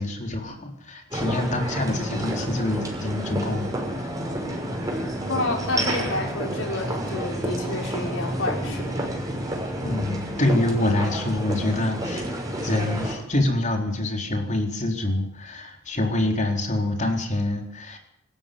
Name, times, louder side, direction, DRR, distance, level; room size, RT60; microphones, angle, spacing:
voice 1, 0.0-4.2 9.8-12.3 12.6-18.0, left 1 dB, 40° left, 3 dB, 4.3 m, -26 dB
sound 1, 1.1-13.2, right 1 dB, 20° right, 6.3 m, -29 dB
voice 2, 5.3-9.1, left 2 dB, 75° left, 2 dB, 5.8 m, -29 dB
24.5 x 13.5 x 9.5 m, 0.70 s
head